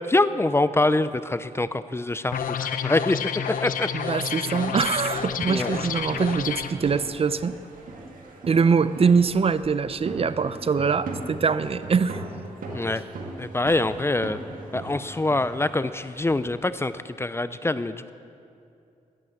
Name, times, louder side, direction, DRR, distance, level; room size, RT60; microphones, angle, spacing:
voice 1, 0.0-3.2 3.5-3.9 5.5-5.8 12.7-13.0 13.4-14.4 14.7-18.1, left 2 dB, 20° left, 13 dB, 0.5 m, -25 dB
sound 1, 2.3-6.7, left 8 dB, 85° left, 0.7 m, -30 dB
voice 2, 4.1-7.5 8.5-12.2, right 5 dB, 45° right, 14 dB, 0.5 m, -23 dB
lewes cheers & bell & drum, 4.4-16.5, right 2 dB, 85° right, 1.9 m, -39 dB
12.0 x 11.0 x 7.9 m, 2.6 s
cardioid pair, 85°, 14 cm